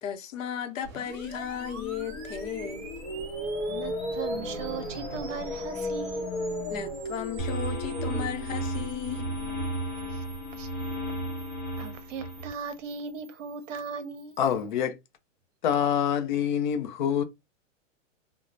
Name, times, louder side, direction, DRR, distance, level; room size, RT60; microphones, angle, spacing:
voice 1, 0.0-2.9 6.7-9.3, left 9 dB, 80° left, 0.7 m, -35 dB
sound 1, 0.8-14.7, right 4 dB, 20° right, 0.8 m, -49 dB
sound 2, 1.3-11.4, left 1 dB, 20° left, 0.7 m, -36 dB
voice 2, 3.7-6.2 10.0-10.2 10.5-10.9 11.7-14.4, right 6 dB, 70° right, 0.7 m, -38 dB
sound 3, 7.4-12.5, right 1 dB, 5° left, 1.1 m, -33 dB
voice 3, 14.4-15.0 15.6-17.2, left 9 dB, 40° left, 0.4 m, -26 dB
2.5 x 2.0 x 3.0 m
supercardioid pair, 165°, 39 cm